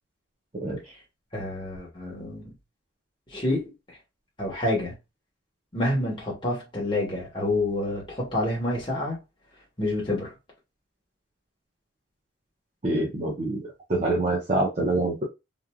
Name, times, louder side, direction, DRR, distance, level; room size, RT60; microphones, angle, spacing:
voice 1, 1.3-2.5 3.3-4.0 4.4-4.9 5.7-9.2 9.8-10.3, left 1 dB, 25° left, 1.1 m, -28 dB
voice 2, 12.8-13.6 13.9-15.2, right 2 dB, 35° right, 0.7 m, -25 dB
3.1 x 2.5 x 2.2 m
head